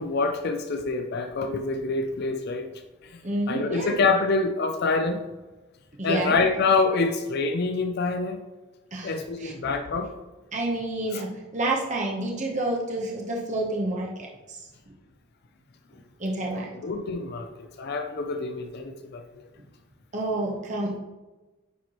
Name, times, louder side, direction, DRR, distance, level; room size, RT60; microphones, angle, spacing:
voice 1, 0.0-2.7 3.0-3.2 3.5-5.2 6.0-8.4 9.0-10.1 11.1-11.2 16.8-19.2, left 3 dB, 50° left, 5 dB, 0.4 m, -26 dB
voice 2, 3.2-4.0 6.0-6.4 8.9-9.5 10.5-14.7 16.2-16.8 20.1-21.0, right 2 dB, 35° right, -2 dB, 0.9 m, -29 dB
9.3 x 4.5 x 3.0 m, 1.1 s
head